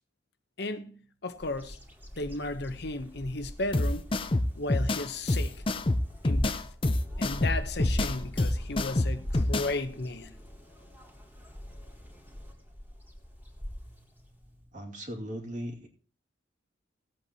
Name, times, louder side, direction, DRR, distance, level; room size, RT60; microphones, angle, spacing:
voice 1, 0.6-1.8 2.2-4.1 4.5-5.6 6.2-6.6 7.2-10.3, left 2 dB, 60° left, 0.9 m, -34 dB
Bird vocalization bird call bird song, 1.4-14.7, equal, 10° right, 2.5 m, -41 dB
sound 1, 3.7-9.7, left 2 dB, 30° left, 0.6 m, -27 dB
voice 2, 14.7-15.9, equal, 40° right, 2.4 m, -38 dB
18.5 x 8.2 x 2.9 m
head